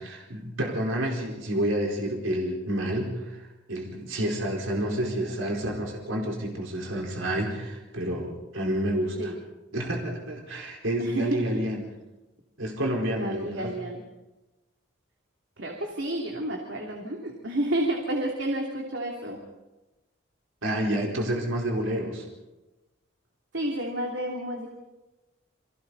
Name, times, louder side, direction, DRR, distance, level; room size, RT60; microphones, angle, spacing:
voice 1, 0.0-9.3 9.7-11.8 12.6-13.8 20.6-22.3, right 1 dB, 80° right, -1 dB, 4.5 m, -29 dB
voice 2, 5.0-5.4 9.2-9.4 11.0-11.5 13.2-14.0 15.6-19.4 23.5-24.7, right 1 dB, 65° right, 0 dB, 3.1 m, -30 dB
30.0 x 24.0 x 4.2 m, 1.1 s
head